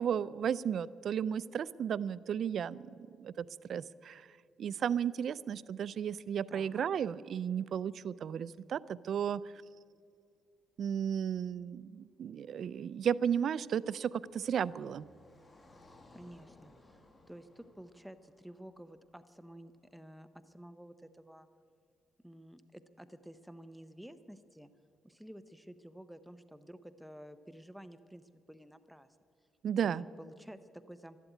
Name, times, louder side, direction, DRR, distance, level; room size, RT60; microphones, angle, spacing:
voice 1, 0.0-2.9 3.2-4.3 4.6-9.4 10.8-15.1 29.6-30.0, right 8 dB, 60° right, 19 dB, 0.4 m, -34 dB
voice 2, 6.5-6.8 16.1-21.5 22.2-24.7 25.0-29.1 29.8-31.3, equal, ahead, 12 dB, 0.7 m, -52 dB
Car passing by, 12.7-19.9, left 2 dB, 25° left, 1.9 m, -63 dB
13.0 x 12.0 x 9.2 m, 2.3 s
cardioid pair, 90°, 0 cm